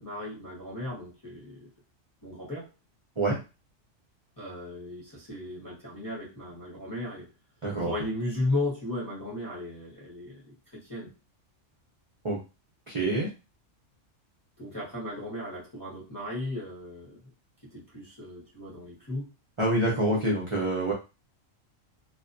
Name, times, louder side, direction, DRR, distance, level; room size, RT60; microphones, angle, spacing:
voice 1, 0.0-1.7 2.2-2.7 4.4-7.3 7.8-10.5 10.8-11.1 14.6-17.2 17.7-19.3, left 2 dB, 20° left, -6 dB, 0.8 m, -35 dB
voice 2, 7.6-7.9 12.2-12.4 12.9-13.3 19.6-20.9, right 1 dB, 40° right, -4 dB, 0.5 m, -26 dB
2.3 x 2.2 x 2.5 m, 0.29 s
omnidirectional pair, 1.3 m